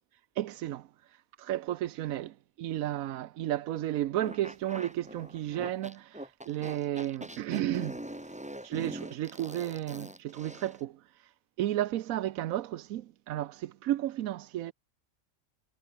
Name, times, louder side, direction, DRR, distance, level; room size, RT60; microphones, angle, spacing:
voice 1, 0.4-0.9 1.4-8.0 8.6-11.0 11.6-14.7, right 13 dB, 90° right, 1.1 m, -33 dB
sound 1, 4.2-10.8, right 1 dB, 5° right, 1.1 m, -43 dB
omnidirectional pair, 1.4 m